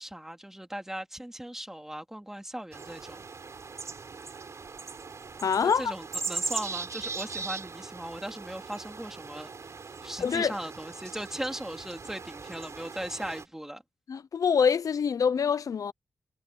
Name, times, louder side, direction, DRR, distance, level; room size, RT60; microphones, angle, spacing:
voice 1, 0.0-3.2 5.6-9.5 10.0-13.8, right 1 dB, 5° right, 2.9 m, -38 dB
sound 1, 2.7-13.4, right 4 dB, 55° right, 3.9 m, -39 dB
voice 2, 5.4-5.9 10.2-10.6 14.1-15.9, left 6 dB, 65° left, 0.6 m, -25 dB
wide cardioid pair, 120°, 6 cm